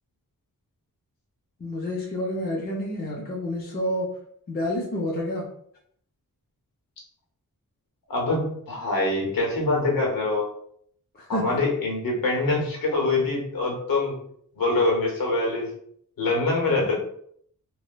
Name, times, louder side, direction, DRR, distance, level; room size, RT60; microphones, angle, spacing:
voice 1, 1.6-4.1 4.5-5.5 11.3-11.6, left 1 dB, 30° left, -3 dB, 0.5 m, -29 dB
voice 2, 8.1-10.5 11.3-14.2 14.6-15.7 16.2-17.0, left 2 dB, 80° left, -2 dB, 0.9 m, -24 dB
3.2 x 2.1 x 2.2 m, 0.65 s
wide cardioid pair, 180°, 34 cm